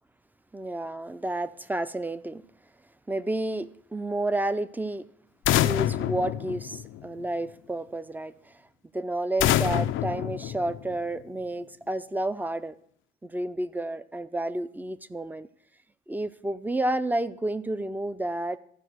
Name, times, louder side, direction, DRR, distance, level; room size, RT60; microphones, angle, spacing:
voice 1, 0.5-2.4 3.1-5.0 5.6-8.5 8.9-12.7 13.2-15.5 16.1-18.6, right 1 dB, 10° right, 14 dB, 0.5 m, -30 dB
sound 1, 5.5-7.3 9.4-11.2, left 13 dB, 80° left, 0.5 m, -26 dB
14.5 x 5.0 x 6.3 m, 0.67 s
cardioid pair, 90°, 20 cm